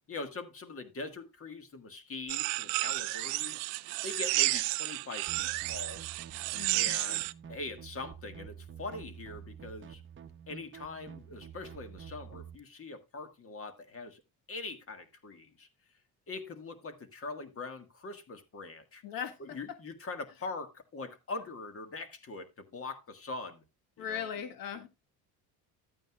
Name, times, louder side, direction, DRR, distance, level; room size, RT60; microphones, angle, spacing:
voice 1, 0.1-6.0 6.7-10.0 10.5-14.2 14.5-15.7 16.3-19.0 19.4-23.6 24.0-24.3, left 3 dB, 35° left, 1.7 m, -42 dB
sound 1, 2.3-7.3, right 24 dB, 90° right, 0.5 m, -32 dB
sound 2, 5.3-12.6, right 8 dB, 30° right, 1.0 m, -49 dB
voice 2, 6.5-6.9 19.0-19.6 24.0-24.9, left 8 dB, 60° left, 2.0 m, -38 dB
13.0 x 9.0 x 2.3 m
cardioid pair, 100°, 40 cm